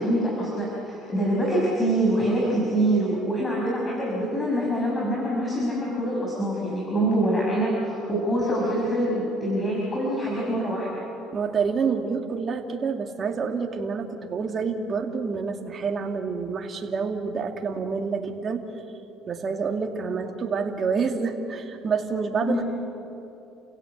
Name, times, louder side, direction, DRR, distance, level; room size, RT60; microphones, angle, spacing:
voice 1, 0.0-10.9 22.5-22.6, right 1 dB, 20° left, -4 dB, 5.9 m, -25 dB
voice 2, 11.3-18.6 19.3-22.6, right 5 dB, 40° right, 4 dB, 2.3 m, -28 dB
29.5 x 16.5 x 8.0 m, 3.0 s
cardioid pair, 105°, 0 cm